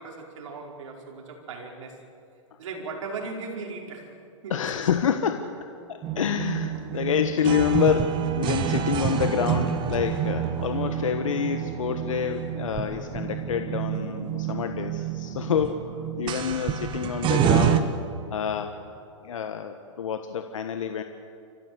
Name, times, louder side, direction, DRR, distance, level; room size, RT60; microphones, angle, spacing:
voice 1, 0.0-2.0 2.6-4.1 4.4-4.8, right 4 dB, 70° right, 0 dB, 5.1 m, -37 dB
voice 2, 4.5-5.5 5.9-18.0 18.3-18.8 19.2-21.0, left 8 dB, 80° left, 7 dB, 1.4 m, -27 dB
sound 1, 6.0-17.8, right 9 dB, 30° right, 1.5 m, -28 dB
29.5 x 15.0 x 7.9 m, 2.5 s
hypercardioid pair, 125°, 17 cm